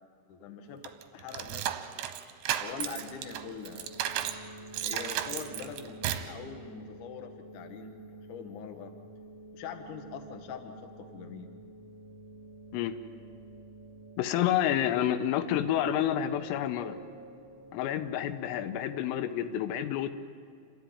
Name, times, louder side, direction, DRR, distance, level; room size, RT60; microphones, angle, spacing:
voice 1, 0.3-1.9 2.6-3.9 4.8-8.9 9.5-11.5, left 6 dB, 70° left, 5 dB, 1.9 m, -43 dB
sound 1, 0.8-4.4 4.7-6.3, right 11 dB, 80° right, 2.7 m, -34 dB
sound 2, 2.6-19.0, right 2 dB, 15° right, 2.5 m, -50 dB
voice 2, 14.2-17.0 17.7-20.1, left 11 dB, 90° left, 10 dB, 3.5 m, -29 dB
28.5 x 13.5 x 9.4 m, 2.2 s
omnidirectional pair, 6.0 m